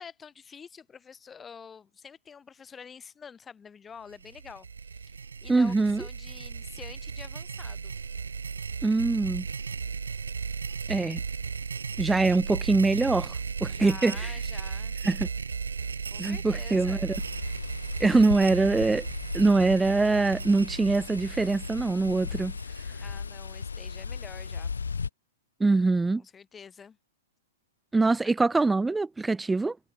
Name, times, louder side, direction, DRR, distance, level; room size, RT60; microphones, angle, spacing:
voice 1, 0.0-4.7 5.0-5.2 5.4-8.0 13.7-15.0 16.1-17.1 23.0-24.8 26.2-27.0, left 6 dB, 15° left, 7.5 m, -47 dB
sound 1, 4.1-23.2, right 5 dB, 80° right, 2.7 m, -36 dB
voice 2, 5.5-6.0 8.8-9.5 10.9-11.2 12.0-13.3 13.6-14.3 15.0-15.3 16.2-17.2 18.0-19.1 19.3-22.5 25.6-26.2 27.9-29.8, right 3 dB, 5° right, 0.4 m, -23 dB
sound 2, 17.1-25.1, left 5 dB, 80° left, 4.4 m, -37 dB
hypercardioid pair, 120°, 0 cm